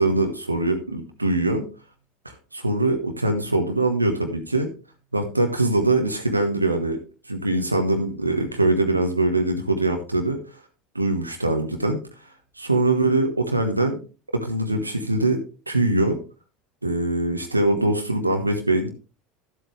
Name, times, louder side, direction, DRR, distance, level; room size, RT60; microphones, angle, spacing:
voice 1, 0.0-1.7 2.2-4.7 5.1-10.4 10.9-12.0 12.6-14.0 14.3-16.2 16.8-18.9, right 2 dB, 90° right, 5 dB, 1.2 m, -23 dB
12.0 x 7.8 x 3.3 m, 0.33 s
figure-of-eight pair, 70°, 0 cm